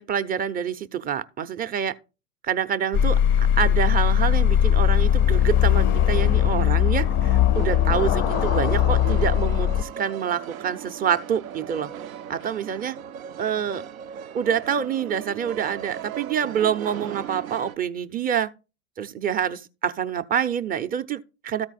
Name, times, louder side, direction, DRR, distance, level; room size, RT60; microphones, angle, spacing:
voice 1, 0.0-1.9 2.4-11.9 12.3-13.0 13.4-13.8 14.3-18.5 19.0-21.7, right 8 dB, 20° right, 0.6 m, -27 dB
sound 1, 2.9-9.8, left 10 dB, 30° left, 0.4 m, -20 dB
sound 2, 7.5-17.8, right 10 dB, 80° right, 0.6 m, -37 dB
13.5 x 4.5 x 4.1 m
hypercardioid pair, 90°, 41 cm